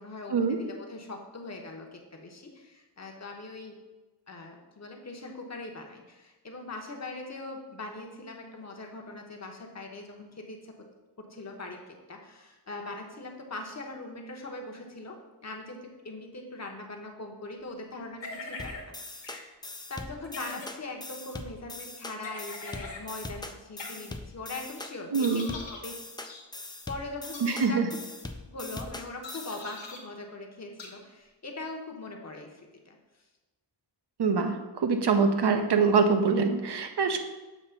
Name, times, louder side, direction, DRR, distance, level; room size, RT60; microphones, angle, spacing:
voice 1, 0.0-3.8 4.3-10.9 11.2-19.5 19.9-25.9 26.9-28.0 28.4-33.0, left 2 dB, 40° left, 2 dB, 0.9 m, -41 dB
sound 1, 18.2-18.8 19.2-19.4 20.2-20.7 22.2-23.0 23.8-23.9 25.2-25.8 26.2-26.4 27.2-27.7 29.2-30.0 30.8-30.9, left 3 dB, 80° left, 1.2 m, -42 dB
sound 2, 18.6-29.6, left 2 dB, 10° left, 0.3 m, -42 dB
voice 2, 25.1-25.5 27.4-27.9 34.2-37.2, right 5 dB, 65° right, 6 dB, 0.7 m, -24 dB
7.2 x 2.9 x 5.5 m, 1.2 s
wide cardioid pair, 145°, 43 cm